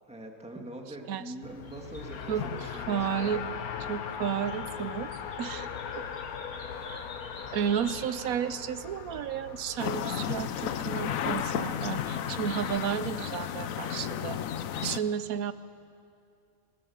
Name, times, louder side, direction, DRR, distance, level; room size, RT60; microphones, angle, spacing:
voice 1, 0.1-3.3, right 1 dB, 5° right, 1 dB, 1.9 m, -43 dB
Race car auto racing, 1.4-12.8, left 7 dB, 85° left, 1.4 m, -40 dB
sound 1, 1.6-8.3, left 2 dB, 45° left, 2.5 m, -52 dB
voice 2, 2.9-3.4 3.9-5.1 5.4-5.7 6.0-6.1 6.9-7.0 7.5-14.4 14.8-15.5, right 8 dB, 80° right, 14 dB, 1.2 m, -32 dB
sound 2, 9.8-15.0, left 9 dB, 70° left, 1.1 m, -33 dB
21.0 x 18.5 x 7.1 m, 2.5 s
omnidirectional pair, 1.5 m